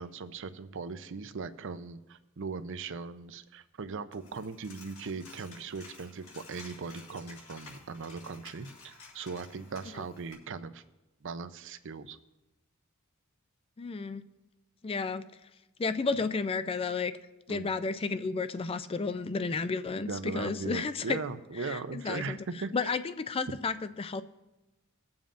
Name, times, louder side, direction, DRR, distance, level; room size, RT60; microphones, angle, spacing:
voice 1, 0.0-10.8 11.2-12.2 17.5-17.7 20.1-22.9, right 4 dB, 60° right, 11 dB, 0.6 m, -39 dB
Coin (dropping), 4.1-10.3, left 3 dB, 75° left, 3.2 m, -52 dB
voice 2, 13.8-14.2 14.8-15.2 15.8-17.1 17.5-21.2 21.6-22.4 22.7-24.2, left 4 dB, 25° left, 12 dB, 0.4 m, -32 dB
21.0 x 7.1 x 2.5 m, 1.0 s
head